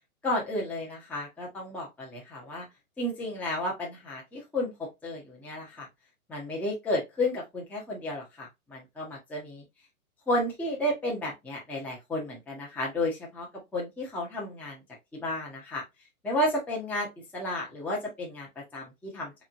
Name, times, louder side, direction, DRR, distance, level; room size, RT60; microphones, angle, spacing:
voice 1, 0.2-2.7 3.0-5.9 6.3-9.6 10.3-13.5 13.7-14.8 15.1-15.8 16.2-19.3, left 1 dB, 5° left, 0.7 m, -32 dB
3.6 x 3.1 x 2.4 m
figure-of-eight pair, 120°, 45 cm